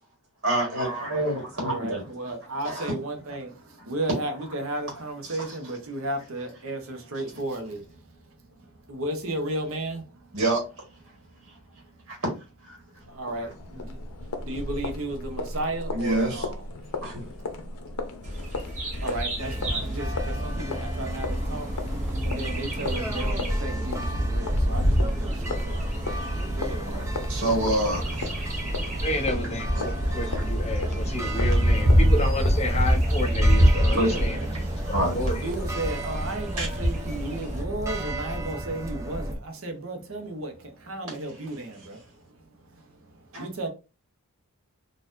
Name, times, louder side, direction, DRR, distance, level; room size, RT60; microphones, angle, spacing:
voice 1, 0.4-2.0 2.6-2.9 5.3-5.5 10.3-10.6 12.1-12.3 12.6-12.8 13.4-13.5 15.9-16.5 17.0-17.3 26.9-28.3 29.7-30.4 34.0-34.1 34.9-35.3 36.6-36.7 43.3-43.4, right 1 dB, 80° right, 1.4 m, -27 dB
voice 2, 1.6-10.4 11.2-11.3 11.7-11.8 12.9-14.0 14.4-17.0 17.4-17.6 18.6-18.7 19.0-27.1 33.5-34.9 35.4-43.7, right 1 dB, 60° right, 0.8 m, -35 dB
sound 1, 13.0-32.6, left 3 dB, 80° left, 0.6 m, -37 dB
Bird vocalization bird call bird song, 18.2-37.6, equal, 35° right, 1.0 m, -27 dB
sound 2, 19.4-39.3, right 1 dB, 15° right, 0.4 m, -32 dB
voice 3, 29.0-34.3 34.9-35.4, left 1 dB, 30° left, 0.6 m, -31 dB
4.2 x 2.5 x 2.5 m
head